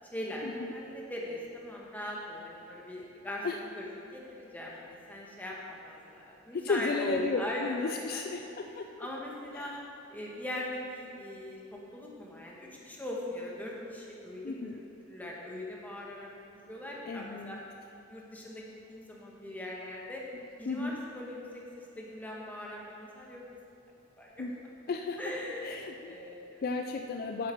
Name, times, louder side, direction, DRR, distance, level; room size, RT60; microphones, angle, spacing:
voice 1, 0.1-8.2 8.7-9.7 10.1-17.6 18.1-20.2 20.6-23.4 24.2-24.5 25.2-26.7, left 1 dB, 10° left, -3 dB, 1.4 m, -40 dB
voice 2, 6.5-8.9 9.5-9.8 14.4-14.8 17.1-17.6 20.7-21.0 24.4-24.5 24.9-25.2 25.6-26.2 26.6-27.5, left 3 dB, 45° left, 4 dB, 0.4 m, -34 dB
9.7 x 8.1 x 4.6 m, 2.8 s
head